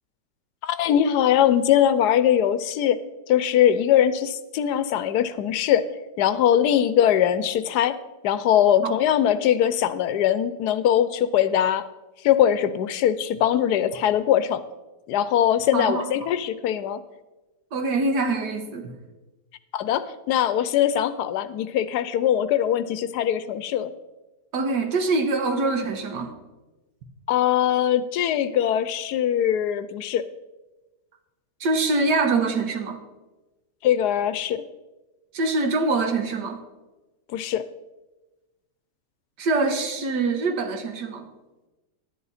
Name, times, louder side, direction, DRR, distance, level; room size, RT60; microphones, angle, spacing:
voice 1, 0.6-3.0 3.3-5.8 6.2-8.0 8.2-11.8 12.2-14.6 15.1-17.0 19.7-23.9 27.3-30.2 33.8-34.6 37.3-37.6, left 10 dB, 80° left, 14 dB, 1.1 m, -21 dB
voice 2, 15.7-16.3 17.7-18.9 24.5-26.3 31.6-33.0 35.3-36.6 39.4-41.3, right 3 dB, 80° right, 6 dB, 1.8 m, -24 dB
11.0 x 10.5 x 4.1 m, 1.1 s
omnidirectional pair, 1.8 m